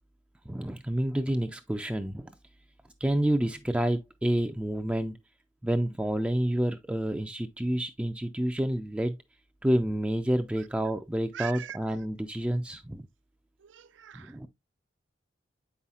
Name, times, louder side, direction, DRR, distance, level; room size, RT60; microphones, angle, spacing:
voice 1, 0.5-2.3 3.0-5.2 5.6-9.2 9.6-13.1 14.1-14.5, right 1 dB, 5° right, 0.3 m, -29 dB
voice 2, 11.3-11.8 13.6-14.5, right 9 dB, 70° right, 0.4 m, -41 dB
8.0 x 5.5 x 2.4 m
head